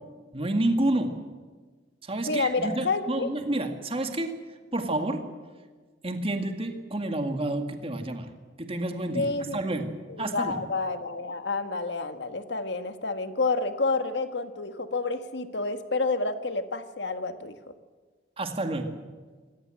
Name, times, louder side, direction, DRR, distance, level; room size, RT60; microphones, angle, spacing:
voice 1, 0.3-1.2 2.0-4.3 4.7-5.2 6.0-8.3 8.6-10.6 18.4-19.0, right 1 dB, 35° right, 5 dB, 2.1 m, -29 dB
voice 2, 2.2-3.3 9.1-9.6 10.1-17.6, left 3 dB, 75° left, 9 dB, 1.7 m, -29 dB
26.0 x 18.0 x 7.8 m, 1.4 s
head